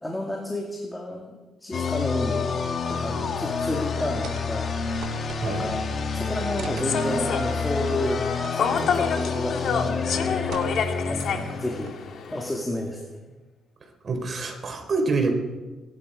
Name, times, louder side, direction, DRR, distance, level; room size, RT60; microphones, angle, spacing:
voice 1, 0.0-2.5 2.9-5.8 6.1-11.9 12.3-13.0, left 1 dB, 15° left, 0 dB, 2.5 m, -31 dB
sound 1, 1.7-12.3, left 5 dB, 50° left, 1.7 m, -29 dB
sound 2, 4.2-4.5 4.8-5.9 6.6-7.0 8.4-8.5 8.9-9.0 9.5-9.8 10.5-11.1 11.6-12.1, right 8 dB, 80° right, 1.4 m, -42 dB
Human voice / Subway metro underground, 6.8-12.5, left 6 dB, 70° left, 1.8 m, -29 dB
voice 2, 14.0-15.3, right 3 dB, 45° right, 3 dB, 4.1 m, -26 dB
24.5 x 11.5 x 5.1 m, 1.2 s
cardioid pair, 90°, 0 cm